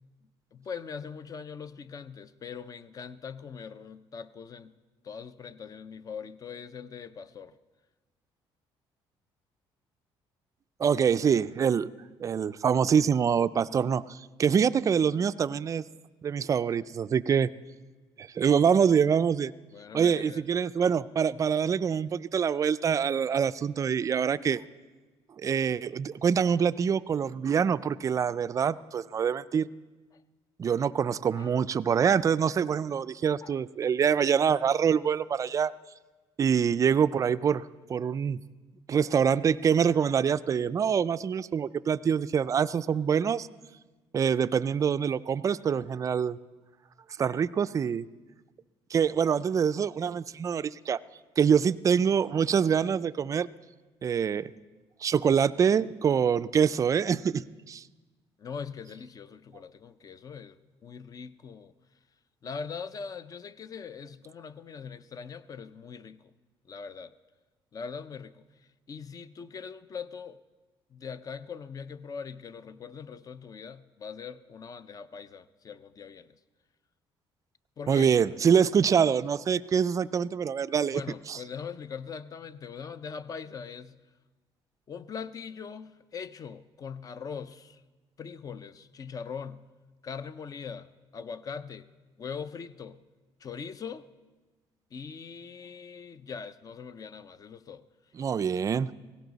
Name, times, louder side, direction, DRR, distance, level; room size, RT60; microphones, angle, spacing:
voice 1, 0.5-4.7 5.0-7.6 19.7-20.5 30.1-30.2 31.4-31.5 33.4-33.6 58.4-61.7 62.4-66.3 66.7-67.1 67.7-68.5 68.9-70.4 70.9-76.4 77.8-78.1 80.9-84.0 84.9-87.8 88.2-89.6 90.0-91.9 92.2-93.0 93.4-94.1 94.9-97.8, left 6 dB, 35° left, 14 dB, 0.5 m, -41 dB
voice 2, 10.8-11.9 12.2-15.8 16.2-17.5 18.2-19.5 19.9-24.6 25.4-29.7 30.6-35.7 36.4-37.6 37.9-38.4 38.9-43.5 44.1-46.4 47.2-48.1 48.9-51.0 51.4-53.5 54.0-54.5 55.0-57.8 77.9-81.0 81.3-81.4 98.2-98.9, right 7 dB, 35° right, 15 dB, 0.4 m, -25 dB
17.0 x 16.5 x 4.0 m, 1.2 s
cardioid pair, 115°, 10 cm